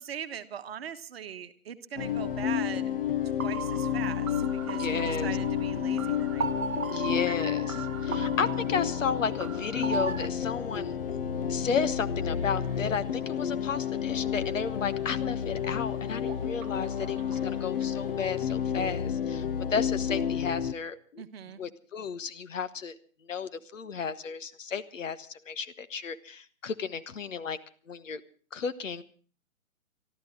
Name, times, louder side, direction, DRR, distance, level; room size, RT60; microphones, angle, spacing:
voice 1, 0.0-2.9 3.4-6.5 6.7-7.1 21.2-21.6, right 8 dB, 50° right, 9 dB, 1.2 m, -41 dB
sound 1, 2.0-20.7, left 9 dB, 45° left, 0.7 m, -31 dB
sound 2, 3.4-10.3, right 5 dB, 80° right, 1.1 m, -37 dB
voice 2, 4.8-5.3 6.9-11.0 11.5-19.4 19.7-21.2 21.6-22.9 23.3-27.6 27.9-28.2 28.5-29.0, left 6 dB, 65° left, 12 dB, 1.3 m, -33 dB
sound 3, 12.3-18.7, right 9 dB, 25° right, 1.3 m, -54 dB
24.5 x 13.0 x 3.7 m, 0.42 s
hypercardioid pair, 145°, 40 cm